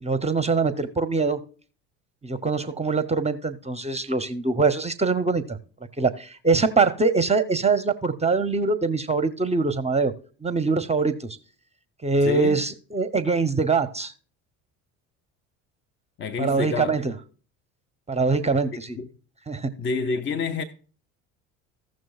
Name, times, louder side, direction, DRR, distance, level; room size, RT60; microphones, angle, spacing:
voice 1, 0.0-1.4 2.2-5.6 6.0-10.1 10.4-11.4 12.0-14.1 16.4-17.1 18.1-19.0 19.5-19.7, right 4 dB, 15° right, 0.6 m, -23 dB
voice 2, 12.2-12.6 16.2-17.0 19.0-19.1 19.8-20.6, left 4 dB, 30° left, 0.6 m, -28 dB
16.0 x 6.3 x 2.3 m
hypercardioid pair, 70°, 39 cm